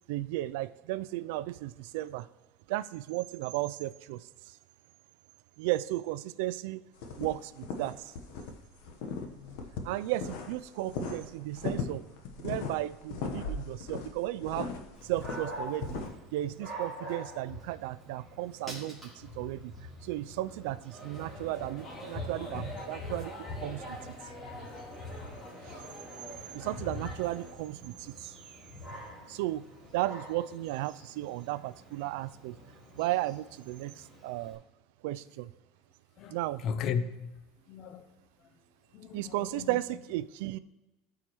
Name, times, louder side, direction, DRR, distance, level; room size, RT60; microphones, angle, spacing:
voice 1, 0.1-2.3 2.7-4.6 5.6-6.8 7.1-8.1 9.8-12.0 12.4-14.7 15.0-16.0 16.3-19.7 20.0-24.1 25.7-25.8 26.5-28.3 29.3-29.7 29.9-32.6 32.9-34.6 35.0-35.5 36.3-36.6 39.1-40.6, right 16 dB, 75° right, 0.3 m, -34 dB
sound 1, 7.0-8.5 8.8-10.6 10.9-16.1, left 5 dB, 70° left, 1.0 m, -38 dB
Dog, 14.9-34.5, left 1 dB, ahead, 2.8 m, -45 dB
sound 2, 20.9-27.5, left 1 dB, 25° left, 2.1 m, -45 dB
voice 2, 36.6-37.3 37.7-38.1 38.9-39.8, left 6 dB, 40° left, 0.5 m, -35 dB
12.5 x 4.8 x 3.0 m
cardioid pair, 150°, 0 cm